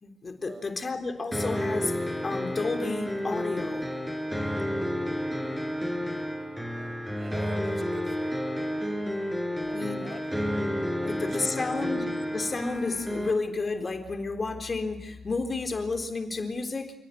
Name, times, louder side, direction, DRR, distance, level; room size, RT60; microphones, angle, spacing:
voice 1, 0.0-3.9 9.7-10.1 11.0-16.9, left 3 dB, 35° left, 6 dB, 3.8 m, -31 dB
sound 1, 1.3-13.3, equal, ahead, 4.9 m, -31 dB
voice 2, 6.7-8.5 9.7-10.6 11.0-11.6, right 4 dB, 40° right, 12 dB, 4.4 m, -47 dB
29.0 x 17.5 x 9.9 m, 0.89 s
supercardioid pair, 55°, 0 cm